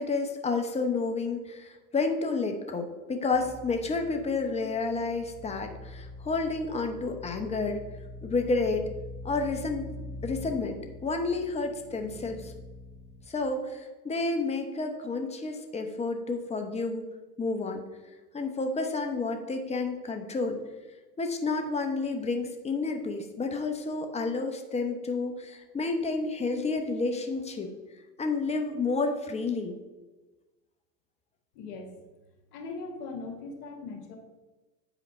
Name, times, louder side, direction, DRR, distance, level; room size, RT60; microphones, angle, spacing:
voice 1, 0.0-7.8 8.2-8.9 9.2-9.9 10.2-12.5 13.3-17.0 17.4-17.8 18.3-20.6 21.2-27.7 28.2-29.8, left 3 dB, 15° left, 4 dB, 0.8 m, -30 dB
sound 1, 3.3-13.2, left 2 dB, 20° right, 1.1 m, -44 dB
voice 2, 31.6-31.9 32.5-34.2, left 3 dB, 65° left, 3 dB, 1.6 m, -39 dB
8.9 x 5.0 x 4.3 m, 1.2 s
hypercardioid pair, 110°, 50 cm